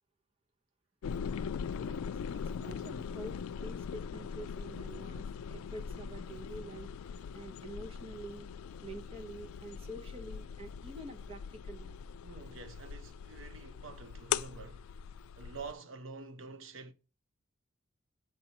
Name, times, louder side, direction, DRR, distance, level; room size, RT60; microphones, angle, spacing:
sound 1, 1.0-15.7, left 7 dB, 85° left, 0.3 m, -41 dB
voice 1, 2.3-8.5 8.8-11.9, right 1 dB, 25° right, 0.8 m, -47 dB
voice 2, 12.2-14.9 15.4-16.9, right 4 dB, 70° right, 0.7 m, -47 dB
7.6 x 5.5 x 2.9 m
head